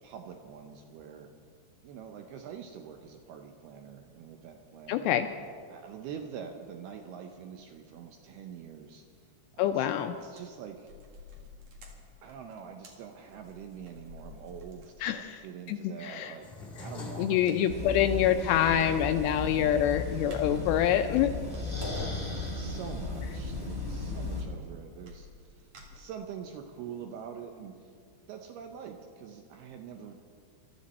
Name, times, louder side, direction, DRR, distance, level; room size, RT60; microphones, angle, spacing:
voice 1, 0.0-1.3 1.8-5.2 5.7-9.0 9.5-10.9 12.2-18.9 20.2-20.7 22.5-27.9 28.3-30.3, right 8 dB, 75° right, 4 dB, 2.4 m, -45 dB
voice 2, 4.9-5.3 9.6-10.1 15.0-15.4 15.7-16.4 17.2-21.3, left 10 dB, 85° left, 7 dB, 2.5 m, -26 dB
sound 1, 9.7-9.9 10.2-15.3 15.7-15.8 17.5-17.8 18.1-18.2 18.5-18.6 18.8-20.7 21.0-22.2 22.6-22.8 24.0-24.1 24.3-24.7 25.1-26.5 26.9-27.0 27.3-27.4, left 2 dB, 50° right, 2.2 m, -51 dB
sound 2, 16.4-21.4, left 3 dB, 45° left, 0.7 m, -46 dB
sound 3, 17.7-24.4, left 2 dB, 10° right, 1.4 m, -35 dB
22.5 x 13.0 x 4.2 m, 2.2 s
omnidirectional pair, 5.3 m